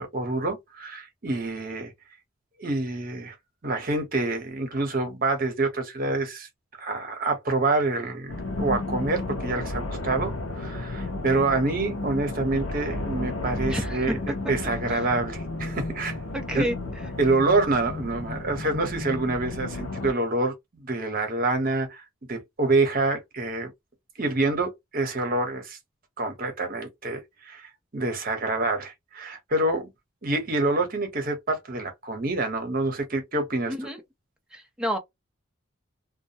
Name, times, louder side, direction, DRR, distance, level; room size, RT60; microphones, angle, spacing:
voice 1, 0.0-1.9 2.6-3.3 3.6-6.5 6.8-16.2 16.5-16.7 17.2-23.7 24.2-25.8 26.2-29.9 30.2-33.7, right 2 dB, 45° right, 0.9 m, -27 dB
sound 1, 8.3-20.1, left 2 dB, 85° left, 0.6 m, -33 dB
voice 2, 13.7-14.2 14.4-14.5 14.9-15.0 16.3-16.8 33.7-34.0 34.5-35.0, equal, 5° right, 0.5 m, -29 dB
2.2 x 2.1 x 2.7 m
head